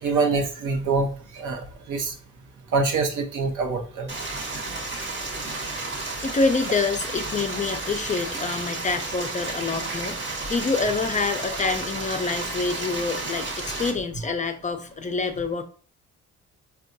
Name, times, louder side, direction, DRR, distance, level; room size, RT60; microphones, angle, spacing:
voice 1, 0.0-2.1 2.7-4.1, right 4 dB, 85° right, 2 dB, 0.8 m, -25 dB
Stream, 4.1-13.9, right 3 dB, 40° right, 1.1 m, -32 dB
voice 2, 6.2-15.6, left 4 dB, 25° left, 7 dB, 0.4 m, -27 dB
4.4 x 2.3 x 2.6 m, 0.41 s
cardioid pair, 90°, 30 cm